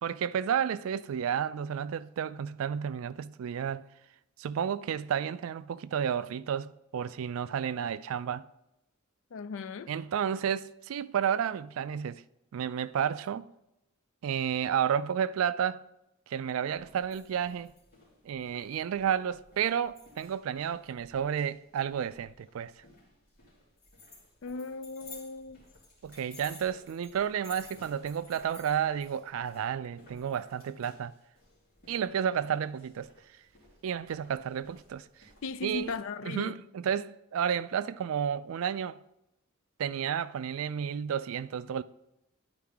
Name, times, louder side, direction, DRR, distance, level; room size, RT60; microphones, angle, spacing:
voice 1, 0.0-3.9 4.4-8.5 9.9-12.2 12.5-13.5 14.2-15.8 16.3-17.7 18.2-22.8 26.0-31.1 31.9-33.1 33.8-35.1 35.6-35.9 36.2-39.0 39.8-41.8, right 8 dB, 70° right, 0.3 m, -31 dB
voice 2, 9.3-9.9 24.4-25.6 35.4-36.5, left 4 dB, 65° left, 0.4 m, -37 dB
sound 1, 16.7-35.9, left 3 dB, 45° left, 2.8 m, -55 dB
10.0 x 4.7 x 3.5 m
head